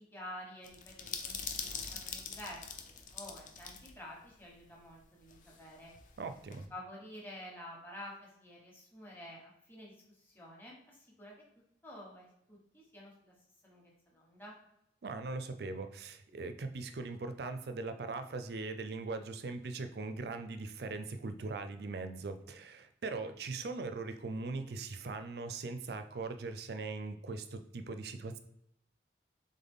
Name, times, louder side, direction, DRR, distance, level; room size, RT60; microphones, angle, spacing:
voice 1, 0.0-5.9 6.7-11.3 11.8-13.3 13.6-14.6, left 1 dB, 10° left, -3 dB, 1.1 m, -50 dB
sound 1, 0.6-3.9 4.2-4.3 5.3-6.7, left 6 dB, 45° left, 0.5 m, -43 dB
voice 2, 6.2-6.7 15.0-28.4, right 3 dB, 60° right, 9 dB, 0.4 m, -40 dB
3.9 x 3.6 x 3.6 m, 0.79 s
head